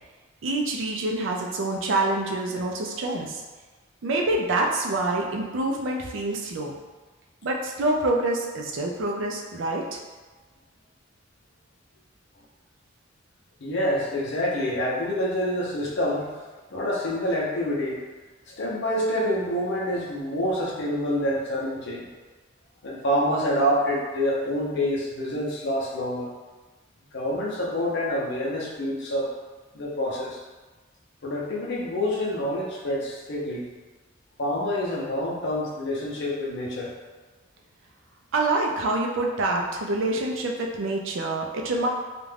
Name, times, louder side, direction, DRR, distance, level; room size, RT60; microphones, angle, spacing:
voice 1, 0.4-3.4 4.0-6.7 7.4-10.0 38.3-41.9, right 2 dB, 75° right, 0 dB, 0.4 m, -26 dB
voice 2, 13.6-16.3 16.7-18.0 18.5-22.1 22.8-26.3 27.1-29.4 29.7-30.4 31.2-33.7 34.4-36.9, equal, 60° left, -3 dB, 0.6 m, -27 dB
2.4 x 2.2 x 3.2 m, 1.3 s
head